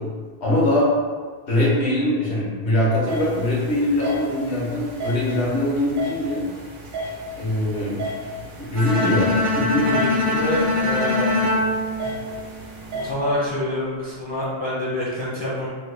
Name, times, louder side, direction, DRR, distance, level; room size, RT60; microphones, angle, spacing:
voice 1, 0.4-0.9 1.5-6.4 7.3-8.3 8.6-10.0, left 1 dB, 85° left, -6 dB, 1.3 m, -22 dB
sound 1, 3.1-13.1, right 1 dB, 70° right, 0.9 m, -34 dB
Bowed string instrument, 8.8-12.9, left 2 dB, 45° right, 0.4 m, -23 dB
voice 2, 9.8-11.5 12.3-12.4 12.9-15.7, left 1 dB, 35° left, -7 dB, 0.5 m, -27 dB
3.6 x 2.2 x 3.3 m, 1.5 s
omnidirectional pair, 1.1 m